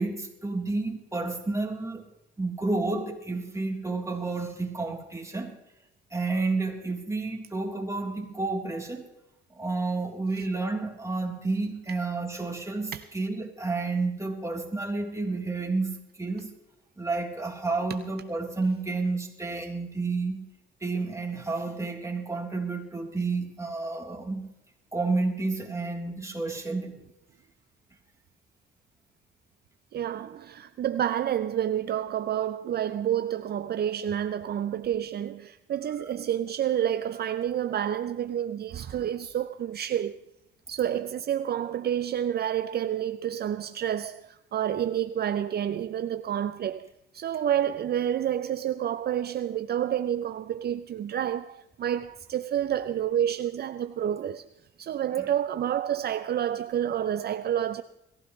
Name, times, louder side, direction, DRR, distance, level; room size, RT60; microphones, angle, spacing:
voice 1, 0.0-2.0 2.4-5.5 6.1-9.1 9.6-16.5 17.0-20.4 20.8-24.5 24.9-26.9 55.2-55.3, right 3 dB, 15° right, 3.6 m, -30 dB
voice 2, 29.9-40.2 40.7-54.5 54.8-57.8, right 10 dB, 55° right, 0.6 m, -29 dB
21.5 x 15.5 x 3.2 m
cardioid pair, 90°, 20 cm